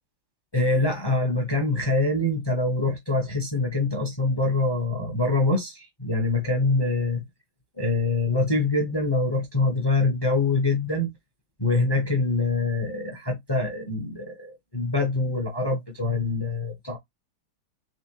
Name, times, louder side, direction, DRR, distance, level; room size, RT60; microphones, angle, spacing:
voice 1, 0.5-7.2 7.7-11.1 11.6-17.0, left 2 dB, 35° left, 0.3 m, -24 dB
4.1 x 3.4 x 2.9 m
omnidirectional pair, 2.2 m